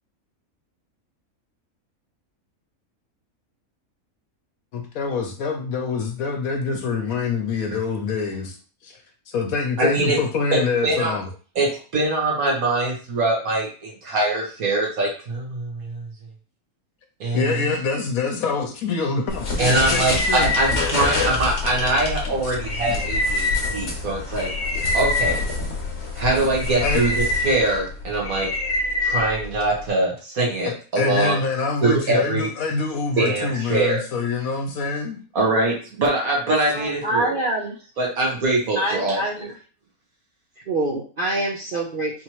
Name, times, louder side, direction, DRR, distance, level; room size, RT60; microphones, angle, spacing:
voice 1, 4.7-8.6 8.8-9.0 9.3-11.2 17.3-20.5 26.8-27.0 30.7-35.2, left 4 dB, 75° left, 3 dB, 1.2 m, -25 dB
voice 2, 9.8-10.2 10.5-11.1 11.6-16.1 17.2-17.7 19.6-24.5 24.9-25.4 26.2-28.5 29.0-31.4 31.8-32.5 33.2-34.0 35.3-37.3 38.0-39.5, right 2 dB, 70° right, -3 dB, 1.9 m, -23 dB
sound 1, 19.3-29.9, left 2 dB, 50° left, 1.3 m, -25 dB
voice 3, 36.7-37.8 38.8-39.5 40.7-42.2, right 1 dB, 50° right, -2 dB, 0.6 m, -25 dB
4.3 x 3.0 x 3.0 m, 0.38 s
omnidirectional pair, 1.5 m